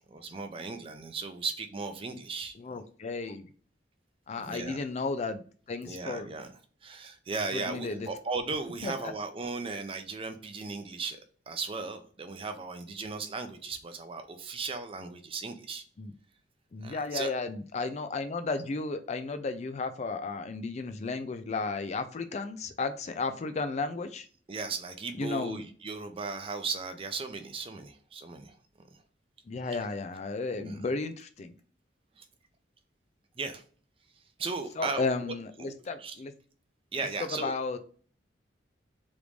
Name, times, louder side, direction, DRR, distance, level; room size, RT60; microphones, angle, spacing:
voice 1, 0.1-2.8 4.4-4.8 5.9-6.5 6.8-11.2 11.5-15.8 16.8-17.3 24.5-28.6 30.5-30.9 32.2-32.3 33.4-33.6 34.4-35.7 36.0-36.2 36.9-37.5, right 4 dB, 30° right, 7 dB, 0.5 m, -36 dB
voice 2, 2.6-3.5 4.3-5.4 5.7-6.3 7.5-8.1 8.8-9.1 16.0-16.1 16.7-24.3 25.2-25.6 29.5-31.5 34.8-36.3 37.4-37.8, left 3 dB, 40° left, 9 dB, 0.4 m, -33 dB
3.1 x 2.6 x 3.4 m, 0.43 s
head